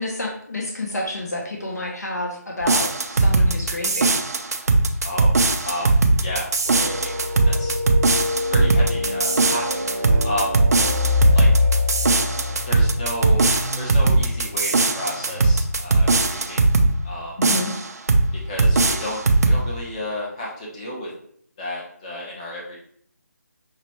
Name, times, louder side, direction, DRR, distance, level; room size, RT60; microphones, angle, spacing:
voice 1, 0.0-4.1 17.4-17.7, left 2 dB, 70° left, -1 dB, 0.8 m, -29 dB
sound 1, 2.6-16.9 17.4-18.3 18.6-19.6, right 3 dB, 65° right, 0.5 m, -19 dB
voice 2, 5.0-5.4 5.6-5.9 6.2-6.5 6.8-7.1 7.4-7.8 8.5-10.7 11.3-11.5 11.8-11.9 12.7-16.7 17.0-17.3 18.3-21.1 21.6-22.8, left 1 dB, 20° left, -4 dB, 0.7 m, -31 dB
sound 2, 6.7-15.6, left 3 dB, 90° right, 0.9 m, -25 dB
5.6 x 2.2 x 3.0 m, 0.63 s
figure-of-eight pair, 160°, 9 cm